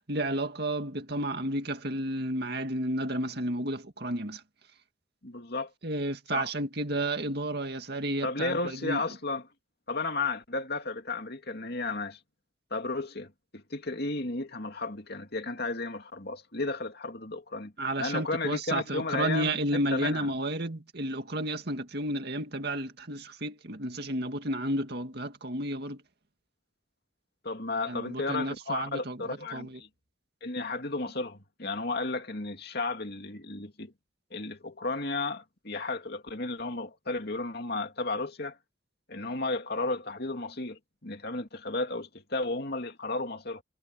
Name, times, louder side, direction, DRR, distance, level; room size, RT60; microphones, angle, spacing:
voice 1, 0.1-4.4 5.8-9.0 17.8-26.0 27.9-29.2 29.5-29.8, right 1 dB, 55° right, 2.2 m, -32 dB
voice 2, 5.2-5.7 6.3-6.5 8.2-9.4 9.9-12.2 12.7-17.7 18.0-19.5 19.9-20.3 27.4-29.9 30.4-33.9 34.3-38.6 39.1-43.6, left 3 dB, 55° left, 2.6 m, -33 dB
head